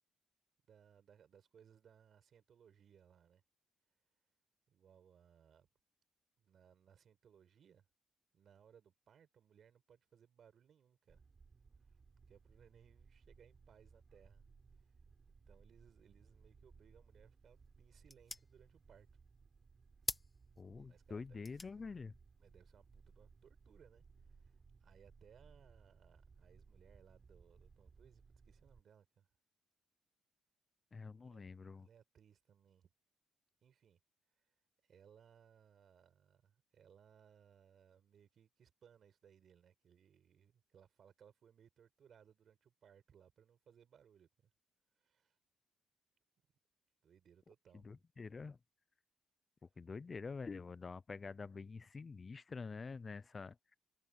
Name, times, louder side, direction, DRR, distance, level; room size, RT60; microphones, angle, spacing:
voice 1, 0.7-3.4 4.7-5.7 6.4-7.9 8.3-11.2 12.3-14.4 14.8-14.9 15.5-19.1 20.7-21.6 22.4-29.3 31.2-32.9 33.6-34.0 34.4-34.5 34.8-44.5 45.0-45.4 47.0-47.9, right 8 dB, 60° right, 5.5 m, -66 dB
sound 1, 11.1-28.8, right 5 dB, 40° right, 6.0 m, -64 dB
sound 2, 17.1-23.9, left 2 dB, 20° left, 1.3 m, -51 dB
voice 2, 20.6-22.1 30.9-31.9 47.8-48.6 49.8-53.6, left 4 dB, 35° left, 0.5 m, -47 dB
open air
cardioid pair, 85°, 0 cm